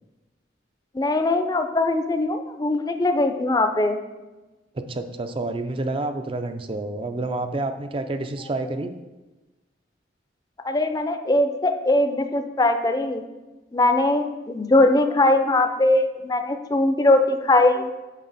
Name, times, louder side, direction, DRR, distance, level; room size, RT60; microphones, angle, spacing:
voice 1, 0.9-4.0 10.6-13.2 13.7-17.9, left 2 dB, 20° left, 7 dB, 0.5 m, -21 dB
voice 2, 4.7-8.9, right 2 dB, 30° right, 8 dB, 0.4 m, -29 dB
7.3 x 5.1 x 4.1 m, 1.1 s
head